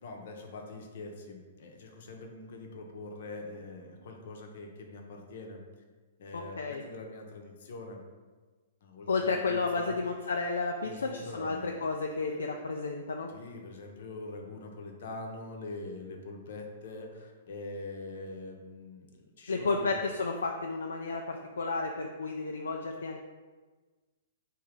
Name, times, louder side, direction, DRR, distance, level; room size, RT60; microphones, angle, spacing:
voice 1, 0.0-5.6 6.2-8.0 8.8-10.0 10.8-11.9 12.3-12.4 13.3-20.0, left 2 dB, 65° left, 2 dB, 0.8 m, -44 dB
voice 2, 6.3-6.8 9.1-13.3 19.5-23.2, left 3 dB, 80° left, 2 dB, 0.3 m, -32 dB
3.7 x 2.7 x 4.7 m, 1.3 s
hypercardioid pair, 120°, 0 cm